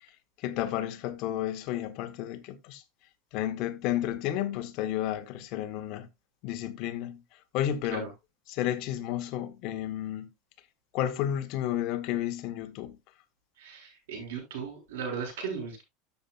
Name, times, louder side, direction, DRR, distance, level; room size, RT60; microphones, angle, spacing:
voice 1, 0.4-2.8 3.3-6.1 6.4-7.2 7.5-8.1 8.5-10.3 10.9-12.9, left 12 dB, 55° left, 1.3 m, -32 dB
voice 2, 13.6-15.8, right 6 dB, 85° right, 6.5 m, -36 dB
13.5 x 7.2 x 2.5 m
supercardioid pair, 140°, 0 cm